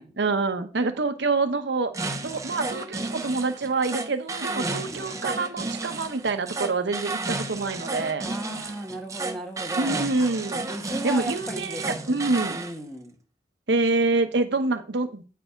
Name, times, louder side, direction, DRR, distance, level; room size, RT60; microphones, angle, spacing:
voice 1, 0.0-1.9 2.2-8.3 9.8-10.6 11.0-12.6 13.7-15.2, right 3 dB, 75° right, 8 dB, 0.9 m, -26 dB
sound 1, 1.9-12.7, right 3 dB, 20° right, 0.7 m, -32 dB
voice 2, 4.5-5.1 8.2-10.1 10.7-12.1 12.5-13.1, equal, ahead, 2 dB, 1.5 m, -36 dB
9.0 x 4.7 x 5.1 m, 0.35 s
head